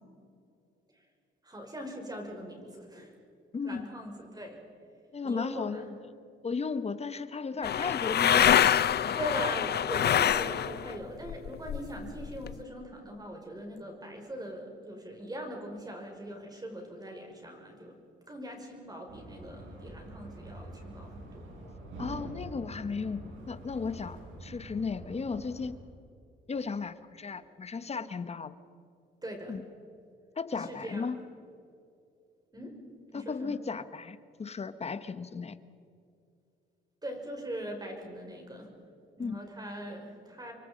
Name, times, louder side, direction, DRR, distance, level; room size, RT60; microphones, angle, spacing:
voice 1, 1.4-3.1 3.6-4.6 5.2-5.9 9.1-18.0 18.3-21.5 29.2-29.6 30.6-31.2 32.5-32.7 33.1-33.6 37.0-38.7 39.2-40.5, equal, 20° right, 2 dB, 5.9 m, -41 dB
voice 2, 3.5-3.8 5.1-5.9 6.4-8.5 9.0-9.2 22.0-25.8 26.5-28.5 29.5-29.6 30.4-31.2 33.1-35.6 39.2-39.4, left 5 dB, 30° left, 13 dB, 1.3 m, -35 dB
sound 1, 7.6-10.9 11.3-12.5, left 10 dB, 55° left, 0.7 m, -25 dB
sound 2, 19.1-25.7, right 1 dB, 75° right, 7.8 m, -45 dB
29.0 x 23.5 x 5.3 m, 2.5 s
cardioid pair, 90°, 20 cm